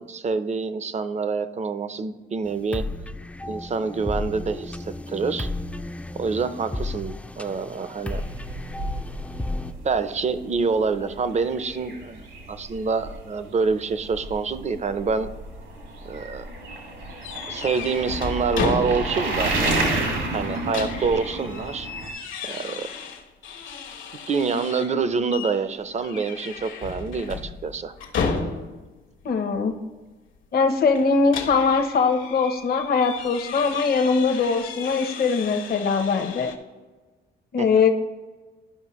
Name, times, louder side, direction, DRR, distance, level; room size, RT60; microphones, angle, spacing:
voice 1, 0.0-2.8 3.5-5.5 6.1-8.2 9.8-15.3 16.0-16.5 17.5-19.6 20.3-21.9 22.4-22.9 24.3-27.9 37.6-37.7, right 5 dB, 35° right, 12 dB, 0.6 m, -26 dB
sound 1, 2.4-9.7, left 2 dB, 5° left, 0.4 m, -33 dB
sound 2, 8.1-22.1, right 2 dB, 75° right, 2.2 m, -31 dB
sound 3, 17.2-19.4 19.7-19.8 20.3-25.0 25.3-25.6 26.0-28.9 30.9-36.6, left 5 dB, 75° left, 1.1 m, -33 dB
voice 2, 29.2-29.7 30.5-36.5 37.5-37.9, left 5 dB, 50° left, 5 dB, 0.8 m, -21 dB
12.5 x 5.3 x 3.0 m, 1.3 s
cardioid pair, 90°, 20 cm